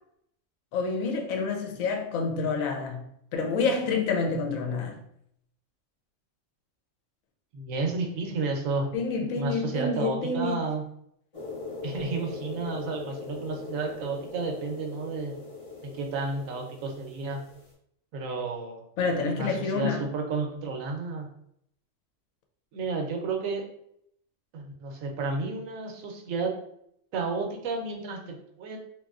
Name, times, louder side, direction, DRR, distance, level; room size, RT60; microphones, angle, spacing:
voice 1, 0.7-3.0 3.3-5.0 8.9-10.6 19.0-20.1, left 4 dB, 90° left, 1.0 m, -28 dB
voice 2, 7.5-8.9 9.3-10.8 11.8-15.3 15.8-17.4 18.1-18.8 19.3-21.3 22.7-23.6 24.5-26.5 27.1-28.8, right 4 dB, 80° right, 1.0 m, -32 dB
sound 1, 11.3-17.7, left 3 dB, 40° left, 0.5 m, -40 dB
2.9 x 2.5 x 2.4 m
omnidirectional pair, 1.4 m